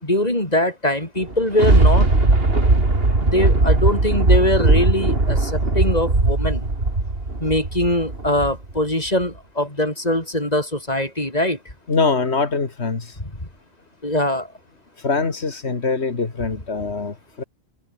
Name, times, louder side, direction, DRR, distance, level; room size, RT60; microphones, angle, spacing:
voice 1, 0.0-2.1 3.2-6.7 7.4-11.6 13.2-13.3 14.0-14.5, left 1 dB, 40° left, 6.0 m, -22 dB
Thunder, 1.2-8.7 9.2-9.3, right 2 dB, 65° right, 3.7 m, -18 dB
voice 2, 11.9-13.2 15.0-17.4, left 4 dB, 85° left, 2.5 m, -23 dB
omnidirectional pair, 1.1 m